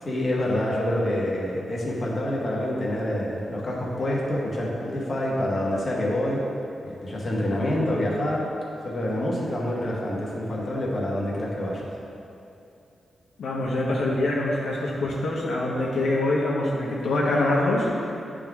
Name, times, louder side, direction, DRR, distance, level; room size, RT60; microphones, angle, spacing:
voice 1, 0.0-6.4 6.8-8.5 8.8-11.9, left 1 dB, 40° left, -4 dB, 1.2 m, -27 dB
voice 2, 13.4-18.2, left 2 dB, 85° left, -4 dB, 0.9 m, -25 dB
9.9 x 3.7 x 3.5 m, 2.7 s
cardioid pair, 100°, 0 cm